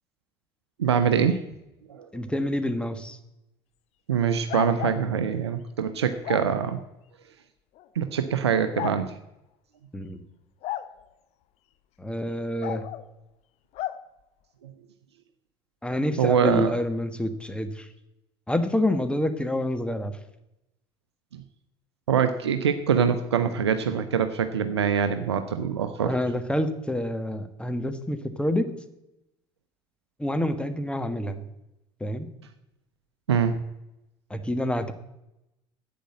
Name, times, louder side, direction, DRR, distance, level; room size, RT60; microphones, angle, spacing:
voice 1, 0.8-1.4 1.9-2.1 4.1-6.8 7.9-9.1 16.2-16.7 22.1-26.1 33.3-33.5, right 7 dB, 80° right, 9 dB, 0.7 m, -24 dB
voice 2, 2.1-3.2 9.9-10.2 12.0-12.8 15.8-17.9 18.5-20.1 26.0-28.7 30.2-31.4 32.0-32.3 34.3-34.9, left 1 dB, 5° left, 9 dB, 1.5 m, -27 dB
sound 1, 4.5-5.0 6.2-6.5 7.8-7.9 8.7-9.0 10.6-10.9 12.6-13.0 13.8-14.0, left 14 dB, 50° left, 0.8 m, -32 dB
10.0 x 8.5 x 7.8 m, 0.88 s
figure-of-eight pair, 65°, 14 cm